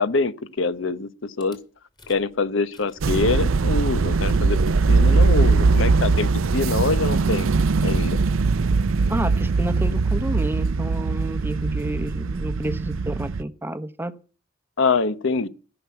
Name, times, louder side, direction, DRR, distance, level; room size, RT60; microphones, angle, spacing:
voice 1, 0.0-1.6 2.1-7.5 7.8-8.2 14.8-15.5, left 3 dB, 65° left, 0.9 m, -25 dB
Rattle / Car / Engine starting, 1.4-1.6 2.0-2.3 2.6-10.3, equal, 20° left, 2.6 m, -39 dB
sound 1, 3.0-13.4, right 4 dB, 80° right, 0.5 m, -21 dB
voice 2, 9.1-14.2, right 1 dB, 10° right, 0.9 m, -30 dB
15.0 x 6.1 x 8.4 m
head